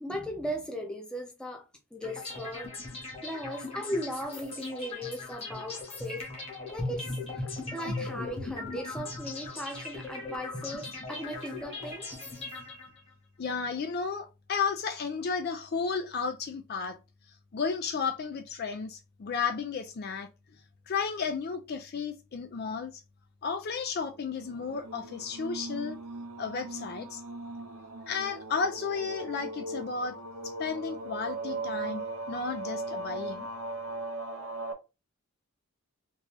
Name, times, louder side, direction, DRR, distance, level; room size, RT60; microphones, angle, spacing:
voice 1, 0.0-1.6 1.9-2.7 3.2-6.3 6.7-12.1, equal, 5° left, 0.6 m, -37 dB
sound 1, 2.0-13.1, left 2 dB, 25° left, 1.2 m, -39 dB
voice 2, 13.4-17.0 17.5-20.3 20.9-23.0 23.4-26.0 26.4-27.2 28.1-30.2 30.4-32.0 32.3-33.5, left 5 dB, 45° left, 0.3 m, -33 dB
sound 2, 24.4-34.7, right 2 dB, 75° right, 0.6 m, -38 dB
3.6 x 2.6 x 3.0 m
head